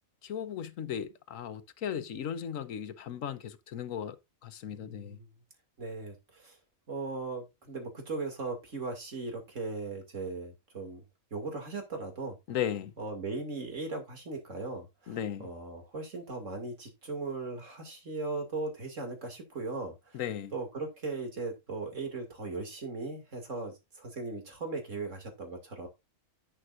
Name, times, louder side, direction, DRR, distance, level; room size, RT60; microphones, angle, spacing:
voice 1, 0.2-4.2 4.4-5.2 12.5-12.9 15.1-15.5 20.1-20.5, left 9 dB, 75° left, 1.2 m, -36 dB
voice 2, 4.7-5.3 5.8-6.6 6.9-11.0 11.3-12.4 13.0-20.2 20.5-25.9, right 3 dB, 65° right, 2.8 m, -38 dB
11.0 x 7.8 x 2.5 m
omnidirectional pair, 1.4 m